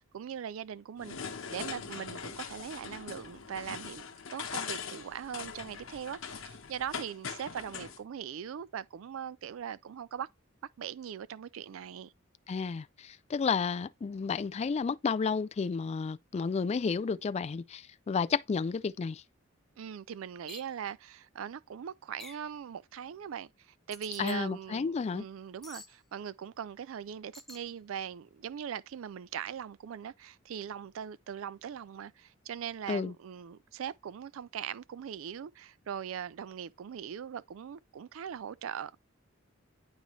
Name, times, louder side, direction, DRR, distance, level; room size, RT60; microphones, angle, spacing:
voice 1, 0.1-10.3 10.8-12.1 19.8-38.9, right 8 dB, 80° right, 0.4 m, -41 dB
sound 1, 1.0-8.0, left 6 dB, 85° left, 1.1 m, -41 dB
voice 2, 12.5-19.2 24.2-25.2 32.9-33.1, left 5 dB, 30° left, 0.3 m, -32 dB
sound 2, 20.5-20.7 22.2-22.5 23.9-24.4 25.6-25.9 27.3-27.6, left 2 dB, ahead, 1.0 m, -48 dB
11.5 x 4.1 x 3.2 m
head